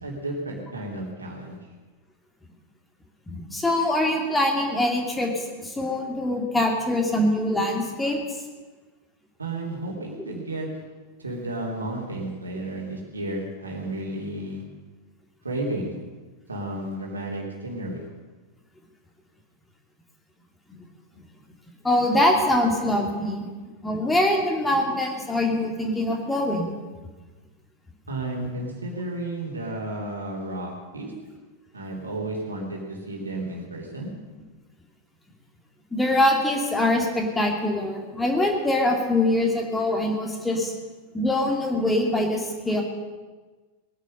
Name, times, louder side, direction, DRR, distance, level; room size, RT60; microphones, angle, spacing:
voice 1, 0.0-1.6 9.4-10.7 11.2-14.6 15.4-15.9 16.5-18.0 28.1-31.1 31.7-34.1, right 1 dB, 75° right, -1 dB, 3.3 m, -32 dB
voice 2, 3.3-8.3 20.7-20.8 21.8-23.4 23.8-26.6 35.9-40.7 41.1-42.8, left 1 dB, 10° left, 1 dB, 2.7 m, -23 dB
20.0 x 10.5 x 6.7 m, 1.3 s
figure-of-eight pair, 90°, 0 cm